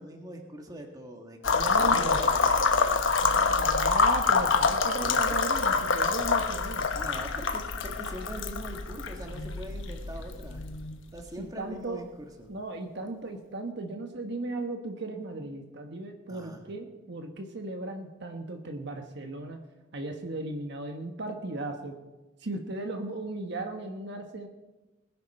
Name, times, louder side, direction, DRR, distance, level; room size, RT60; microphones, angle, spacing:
voice 1, 0.0-3.8 5.0-5.4 5.7-5.8 6.9-10.7 11.1-12.5 16.3-16.6, right 1 dB, 20° right, 2 dB, 1.8 m, -43 dB
sound 1, 1.4-11.2, left 4 dB, 75° left, 1.1 m, -26 dB
voice 2, 1.5-2.2 3.2-6.9 11.4-12.0 12.5-19.6 19.9-21.9 22.4-24.5, right 2 dB, 60° right, 4 dB, 1.4 m, -36 dB
20.5 x 10.5 x 4.4 m, 1.1 s
head